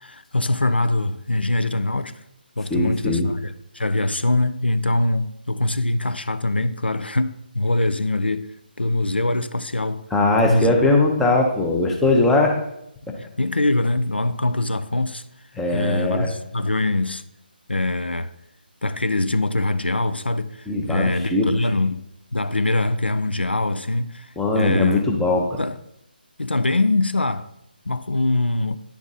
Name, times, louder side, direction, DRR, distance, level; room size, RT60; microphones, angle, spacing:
voice 1, 0.0-2.1 2.6-8.5 8.8-10.0 10.5-10.7 13.2-15.2 15.7-17.2 17.7-18.3 18.8-22.0 22.3-24.3 24.5-25.0 25.6-25.8 26.4-27.5 27.9-28.8, left 2 dB, 85° left, 0.5 m, -23 dB
voice 2, 2.7-3.3 10.1-12.6 15.6-16.3 20.7-21.5 24.4-25.6, left 2 dB, 5° left, 0.6 m, -20 dB
9.8 x 3.5 x 4.0 m
figure-of-eight pair, 150°, 5 cm